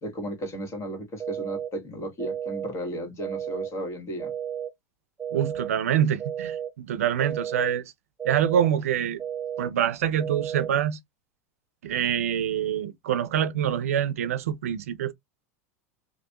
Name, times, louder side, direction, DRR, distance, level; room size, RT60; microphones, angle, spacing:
voice 1, 0.0-4.3, right 1 dB, 35° left, 2.0 m, -34 dB
sound 1, 1.2-1.7 2.2-2.7 3.2-3.7 4.2-4.7 5.2-5.7 6.2-6.7 7.2-7.7 8.2-8.7 9.2-9.7 10.2-10.7, right 9 dB, 10° right, 1.3 m, -33 dB
voice 2, 5.3-7.9 8.2-9.2 9.6-11.0 11.8-15.1, right 9 dB, 80° right, 0.5 m, -25 dB
3.1 x 2.6 x 2.9 m
hypercardioid pair, 95°, 8 cm